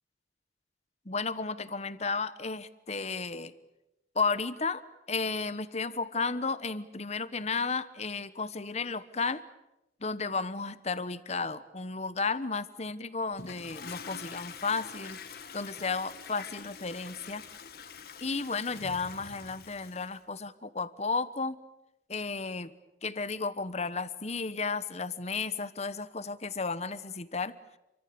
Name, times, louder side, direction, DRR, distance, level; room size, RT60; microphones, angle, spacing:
voice 1, 1.0-3.5 4.1-4.8 5.1-9.4 10.0-15.2 15.5-17.4 18.2-21.6 22.1-22.7 23.0-27.5, left 4 dB, 40° left, 14 dB, 1.2 m, -33 dB
Toilet flush, 13.3-20.2, left 6 dB, 60° left, 1.7 m, -45 dB
28.5 x 24.0 x 7.0 m, 0.91 s
head